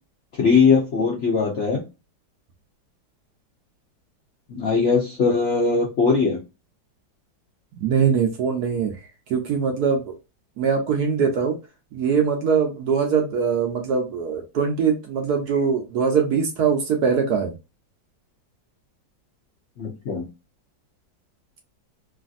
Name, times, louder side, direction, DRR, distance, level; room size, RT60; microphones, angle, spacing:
voice 1, 0.4-1.8 4.5-6.4 19.8-20.2, left 5 dB, 60° left, -2 dB, 0.7 m, -20 dB
voice 2, 7.8-8.9 9.3-10.1 10.6-11.6 11.9-17.5, right 6 dB, 70° right, 3 dB, 1.0 m, -22 dB
3.2 x 2.5 x 2.5 m, 0.26 s
omnidirectional pair, 2.0 m